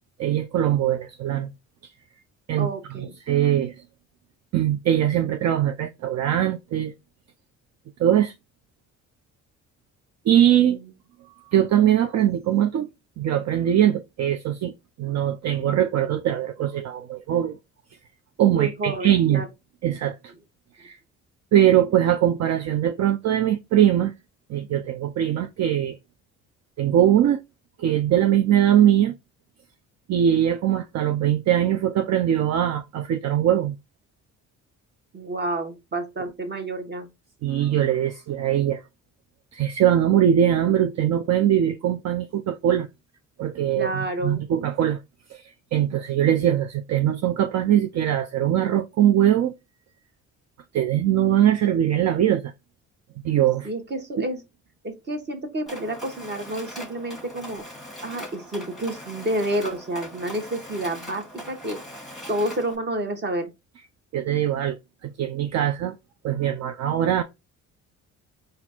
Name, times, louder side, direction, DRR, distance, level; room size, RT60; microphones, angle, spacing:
voice 1, 0.2-1.5 2.5-3.7 4.5-6.9 8.0-8.3 10.3-10.8 11.5-12.9 13.2-17.6 18.4-19.4 19.8-20.3 20.8-21.0 21.5-24.1 24.5-26.0 26.8-27.4 27.8-29.1 30.1-33.8 37.4-38.8 39.5-42.9 43.4-45.0 45.3-49.5 50.7-52.5 53.2-53.7 54.2-54.3 64.1-64.8 65.0-65.9 66.2-67.2, right 11 dB, 60° right, 0.5 m, -21 dB
voice 2, 2.6-3.1 10.5-10.9 18.5-19.5 35.1-37.1 43.7-44.4 53.6-54.4 54.8-57.6 58.0-62.0 62.3-63.5, right 1 dB, 35° right, 1.3 m, -29 dB
Mechanisms, 55.7-62.8, equal, ahead, 1.4 m, -40 dB
4.1 x 2.5 x 4.3 m
cardioid pair, 90°, 30 cm